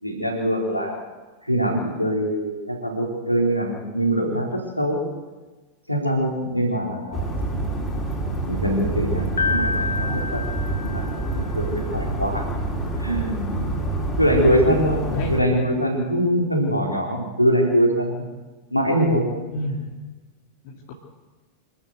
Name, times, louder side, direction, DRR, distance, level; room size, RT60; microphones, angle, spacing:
voice 1, 0.0-1.0 1.4-5.0 5.9-7.3 8.4-12.5 13.0-13.6 14.2-18.2 18.7-19.3 19.7-19.8, equal, 90° left, -1 dB, 4.2 m, -23 dB
sound 1, 7.1-15.4, right 2 dB, 20° left, 4.7 m, -27 dB
Piano, 9.4-11.5, left 5 dB, 75° left, 0.9 m, -27 dB
voice 2, 19.5-19.9 20.6-20.9, left 1 dB, 50° left, -2 dB, 2.7 m, -29 dB
26.0 x 13.0 x 8.1 m, 1.2 s
figure-of-eight pair, 90°, 0 cm